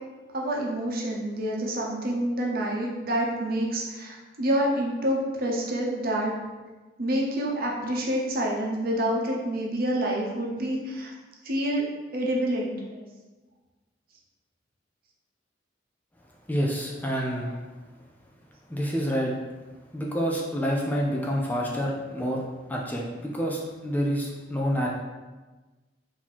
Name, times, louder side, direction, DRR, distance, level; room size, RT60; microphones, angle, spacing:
voice 1, 0.3-6.3 7.0-11.1 11.4-13.0 17.4-17.6, right 1 dB, 55° right, -2 dB, 0.9 m, -28 dB
voice 2, 16.5-17.5 18.7-19.3 19.9-22.4 22.7-24.9, equal, 10° left, -2 dB, 0.5 m, -28 dB
4.4 x 2.9 x 4.2 m, 1.2 s
head